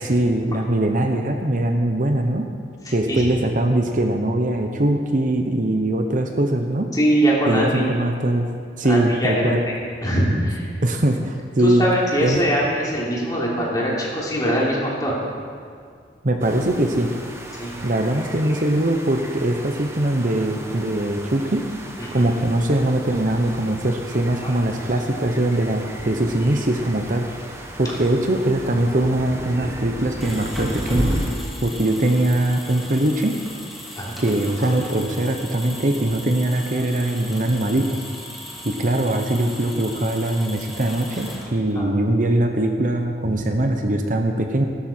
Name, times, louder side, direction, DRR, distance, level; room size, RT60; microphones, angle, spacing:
voice 1, 0.0-2.5 2.9-6.9 7.5-8.5 8.8-9.6 10.8-11.9 12.2-12.4 16.2-17.1 17.8-21.6 22.1-27.3 27.8-31.1 31.6-33.4 34.2-38.0 38.6-44.7, right 1 dB, 50° right, 4 dB, 1.0 m, -21 dB
voice 2, 2.8-3.3 6.9-8.0 8.9-9.7 10.0-10.7 11.6-15.2 17.6-17.7 22.0-22.3 24.4-24.5 33.9-34.2 41.7-41.9, right 1 dB, 20° left, -5 dB, 3.3 m, -22 dB
sound 1, 16.4-31.3, equal, 15° right, 1.2 m, -34 dB
sound 2, 30.0-41.8, equal, ahead, 2.5 m, -37 dB
16.5 x 13.0 x 4.5 m, 2.1 s
head